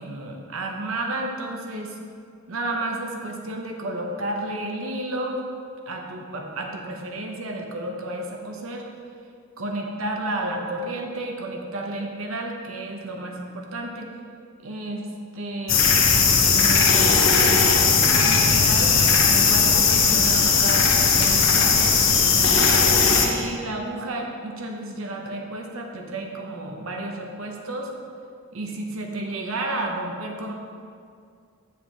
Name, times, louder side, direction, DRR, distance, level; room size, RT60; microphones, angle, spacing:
voice 1, 0.0-2.0 2.5-5.4 5.9-8.9 9.6-14.1 14.6-15.0 15.3-15.8 16.4-17.8 18.1-18.9 19.3-20.9 21.1-22.3 23.0-27.9 28.5-30.5, right 2 dB, 90° right, 1 dB, 0.9 m, -32 dB
sound 1, 15.7-23.3, left 5 dB, 75° left, 0.9 m, -18 dB
7.7 x 7.3 x 3.4 m, 2.3 s
head